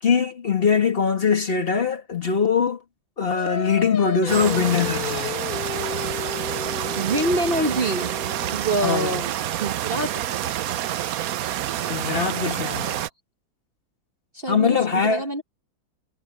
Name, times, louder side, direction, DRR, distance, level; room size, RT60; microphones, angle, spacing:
voice 1, 0.0-2.8 3.2-5.4 8.8-9.2 11.9-13.0 14.5-15.3, left 6 dB, 30° left, 1.9 m, -22 dB
Singing, 3.3-8.7, left 8 dB, 45° left, 0.6 m, -33 dB
sound 1, 4.3-13.1, right 12 dB, 70° right, 0.9 m, -28 dB
voice 2, 7.0-8.1 8.5-9.3 9.6-10.1 14.3-15.4, right 1 dB, 35° right, 1.0 m, -25 dB
omnidirectional pair, 2.2 m